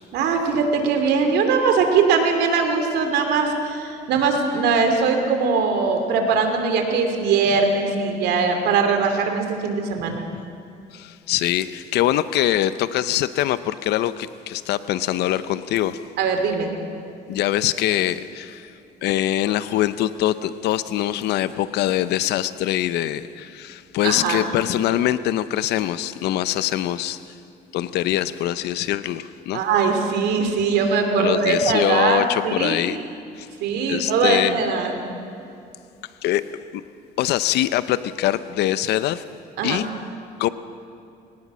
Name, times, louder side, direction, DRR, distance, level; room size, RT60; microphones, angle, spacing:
voice 1, 0.1-10.2 16.2-16.7 24.0-24.5 29.5-32.8 33.6-35.0 39.6-39.8, right 5 dB, 80° right, 5 dB, 3.0 m, -21 dB
voice 2, 10.9-16.0 17.3-18.7 19.0-27.3 27.7-29.6 31.2-33.0 33.4-33.5 33.9-34.6 36.2-36.4 36.7-36.8 37.2-39.2 39.6-39.9 40.4-40.5, left 13 dB, 80° left, 14 dB, 0.7 m, -23 dB
22.5 x 18.5 x 6.2 m, 2.6 s
cardioid pair, 110°, 17 cm